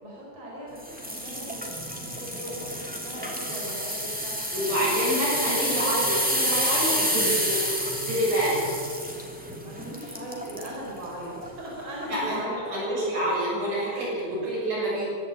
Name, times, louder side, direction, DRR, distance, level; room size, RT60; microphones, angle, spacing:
voice 1, 0.0-5.2 9.6-13.0 13.9-14.1 14.4-14.5, right 1 dB, 55° right, -3 dB, 5.6 m, -39 dB
sound 1, 0.8-10.7 11.3-11.5 12.0-12.1, equal, 5° right, 2.4 m, -29 dB
voice 2, 4.5-8.7 12.1-12.4 12.7-15.1, right 1 dB, 90° right, -5 dB, 8.9 m, -27 dB
24.0 x 12.5 x 8.8 m, 2.3 s
omnidirectional pair, 3.4 m